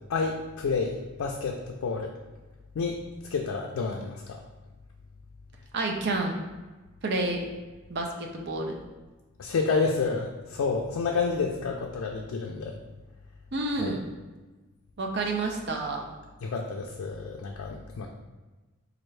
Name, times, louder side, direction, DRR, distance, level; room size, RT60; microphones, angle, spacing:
voice 1, 0.1-2.1 2.8-3.0 3.3-4.4 9.4-12.8 13.8-13.9 16.4-18.1, left 4 dB, 75° left, 1 dB, 0.4 m, -29 dB
voice 2, 5.7-6.4 7.0-7.4 7.9-8.7 13.5-14.1 15.0-16.0, right 2 dB, 50° right, 1 dB, 0.5 m, -29 dB
4.4 x 2.5 x 3.2 m, 1.2 s
head